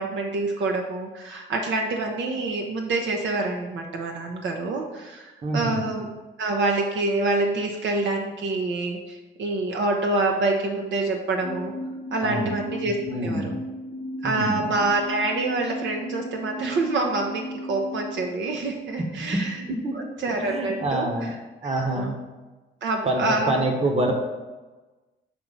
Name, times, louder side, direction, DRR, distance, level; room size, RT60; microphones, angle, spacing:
voice 1, 0.0-6.1 6.4-11.7 12.1-13.5 14.2-19.5 19.9-21.1 21.6-22.2 22.8-23.7, right 2 dB, 65° right, 2 dB, 0.8 m, -26 dB
voice 2, 5.4-5.8 12.2-12.5 13.1-13.6 14.2-14.7 19.2-19.4 19.7-20.0 20.3-21.3 21.6-22.2 23.0-24.1, right 1 dB, 30° right, 2 dB, 1.1 m, -26 dB
sound 1, 11.4-18.3, equal, 65° left, 0.6 m, -35 dB
7.0 x 3.0 x 5.5 m, 1.2 s
cardioid pair, 90°, 20 cm